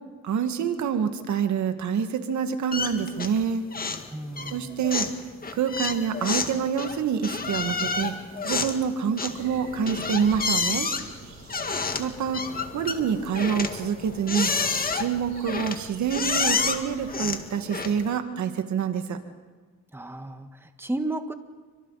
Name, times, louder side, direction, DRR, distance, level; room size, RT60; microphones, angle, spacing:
voice 1, 0.2-3.7 4.5-5.1 5.5-8.1 8.4-10.9 12.0-12.4 12.7-14.5 14.9-19.2, right 7 dB, 70° right, 7 dB, 2.0 m, -27 dB
sound 1, 2.7-3.4 3.7-4.1 4.4-18.2, left 4 dB, 30° left, 1.9 m, -29 dB
voice 2, 4.1-4.8 19.9-21.3, right 2 dB, 10° right, 7 dB, 1.6 m, -33 dB
sound 2, 9.2-17.3, right 5 dB, 90° right, 8.0 m, -48 dB
29.0 x 25.0 x 4.2 m, 1.5 s
cardioid pair, 90°, 30 cm